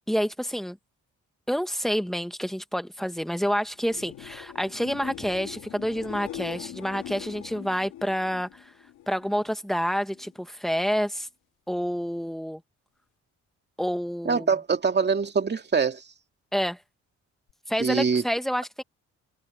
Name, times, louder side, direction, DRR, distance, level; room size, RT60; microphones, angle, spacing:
voice 1, 0.1-0.8 1.5-8.5 9.1-11.3 11.7-12.6 13.8-14.5 16.5-16.8 17.7-18.8, equal, ahead, 1.5 m, -28 dB
sound 1, 3.7-9.5 9.9-10.4 17.5-17.6, left 13 dB, 85° left, 2.4 m, -42 dB
voice 2, 14.2-16.0 17.8-18.2, right 5 dB, 35° right, 2.6 m, -24 dB
cardioid pair, 90°, 30 cm